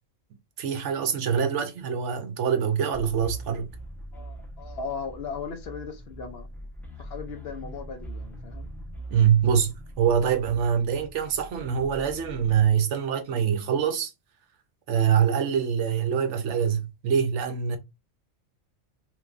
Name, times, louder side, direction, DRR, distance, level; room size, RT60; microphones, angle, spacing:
voice 1, 0.6-3.7 9.1-14.1 14.9-17.8, right 8 dB, 70° right, 0.9 m, -24 dB
sound 1, 2.9-12.7, right 1 dB, ahead, 0.6 m, -42 dB
voice 2, 4.1-6.5 7.0-8.7, left 5 dB, 60° left, 0.7 m, -37 dB
3.3 x 3.0 x 2.4 m
omnidirectional pair, 1.3 m